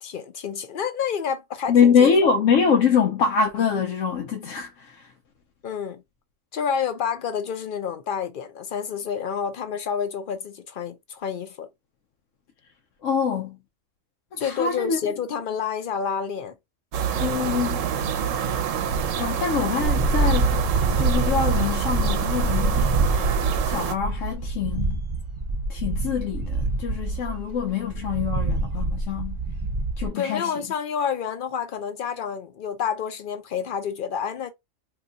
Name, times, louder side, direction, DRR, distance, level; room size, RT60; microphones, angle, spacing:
voice 1, 0.0-2.3 5.6-6.0 6.5-11.7 14.4-16.5 30.1-34.5, left 7 dB, 55° left, 0.6 m, -29 dB
voice 2, 1.7-5.1 13.0-13.6 14.3-15.0 17.2-17.8 19.2-20.6 21.0-23.0 23.6-25.0 25.7-29.4 30.0-30.5, left 6 dB, 90° left, 1.0 m, -24 dB
sound 1, 16.9-24.0, right 8 dB, 80° right, 1.0 m, -26 dB
sound 2, 19.9-30.1, right 2 dB, 45° right, 0.4 m, -26 dB
2.9 x 2.2 x 3.8 m
omnidirectional pair, 1.3 m